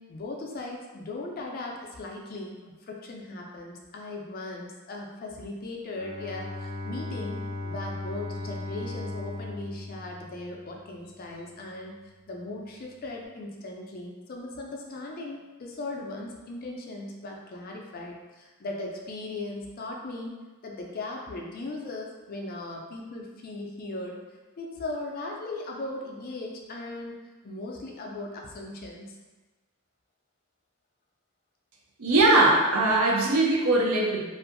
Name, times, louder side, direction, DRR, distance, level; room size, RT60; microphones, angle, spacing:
voice 1, 0.0-2.6 2.9-12.0 12.3-24.2 24.6-29.1, left 2 dB, 45° left, 0 dB, 0.4 m, -38 dB
Bowed string instrument, 5.9-10.8, left 2 dB, 20° right, 0.4 m, -37 dB
voice 2, 32.0-34.2, right 2 dB, 80° right, -2 dB, 0.5 m, -21 dB
2.6 x 2.4 x 2.5 m, 1.2 s
head